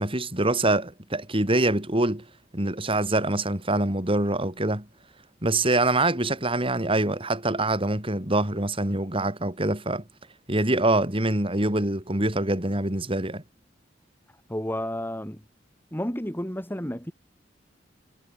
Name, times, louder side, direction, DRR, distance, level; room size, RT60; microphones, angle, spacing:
voice 1, 0.0-2.3 2.5-4.9 5.4-10.0 10.5-13.4, right 2 dB, 30° right, 3.9 m, -25 dB
voice 2, 14.5-15.4 15.9-17.1, left 1 dB, 10° left, 4.0 m, -31 dB
head